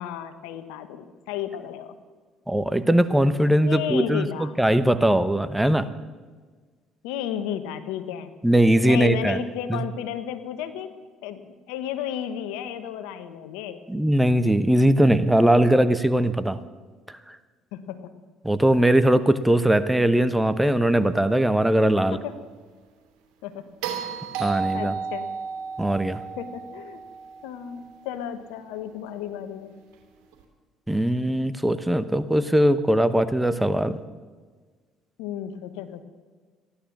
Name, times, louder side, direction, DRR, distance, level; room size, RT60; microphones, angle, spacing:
voice 1, 0.0-1.9 3.6-4.5 7.0-8.3 8.8-10.9 11.2-11.4 11.7-13.8 17.7-18.1 22.0-22.4 23.4-23.7 24.5-25.3 26.4-27.0 27.4-29.7 35.2-36.0, left 9 dB, 80° left, 10 dB, 1.2 m, -33 dB
voice 2, 2.5-5.9 8.4-9.4 9.7-9.8 13.9-16.6 18.4-22.2 24.4-25.0 25.8-26.2 30.9-34.0, right 1 dB, 5° right, 12 dB, 1.0 m, -20 dB
sound 1, 23.8-28.1 30.3-30.4, right 6 dB, 75° right, 2.8 m, -33 dB
15.0 x 11.5 x 7.2 m, 1.5 s
hypercardioid pair, 65°, 0 cm